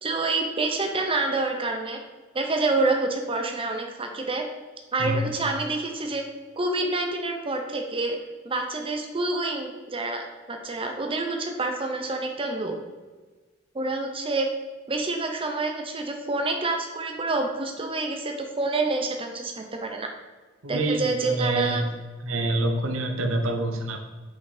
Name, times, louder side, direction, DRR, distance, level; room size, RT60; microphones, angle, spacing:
voice 1, 0.0-2.0 2.3-4.4 4.9-6.2 6.6-8.2 8.4-12.8 13.7-14.5 14.9-20.1 20.7-21.8, right 3 dB, 25° right, 3 dB, 0.7 m, -27 dB
voice 2, 20.6-21.9 22.2-24.0, right 2 dB, 75° right, 4 dB, 0.9 m, -26 dB
5.7 x 5.3 x 5.0 m, 1.3 s
head